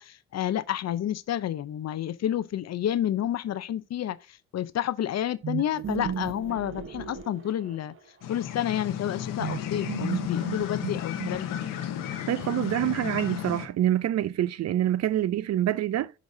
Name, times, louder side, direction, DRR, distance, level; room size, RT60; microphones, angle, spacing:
voice 1, 0.0-7.9 8.3-11.6, left 11 dB, 55° left, 0.5 m, -30 dB
sound 1, 5.4-8.0 9.4-11.8, right 7 dB, 40° right, 0.9 m, -35 dB
sound 2, 8.2-13.7, left 10 dB, 90° left, 0.9 m, -33 dB
voice 2, 12.3-16.1, right 12 dB, 55° right, 0.4 m, -26 dB
11.5 x 4.0 x 2.6 m
cardioid pair, 70°, 32 cm